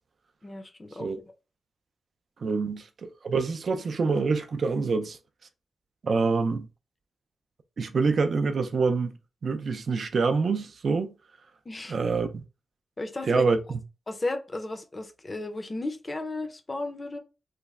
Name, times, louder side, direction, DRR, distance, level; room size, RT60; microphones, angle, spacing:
voice 1, 0.4-1.1 2.5-2.6 11.7-12.0 13.0-13.5 14.1-17.2, left 2 dB, 25° left, 0.6 m, -34 dB
voice 2, 2.4-5.2 6.0-6.7 7.8-9.1 9.4-11.1 11.9-12.4 13.3-13.8, right 4 dB, 55° right, 0.4 m, -26 dB
3.2 x 2.0 x 3.5 m
wide cardioid pair, 115°, 0 cm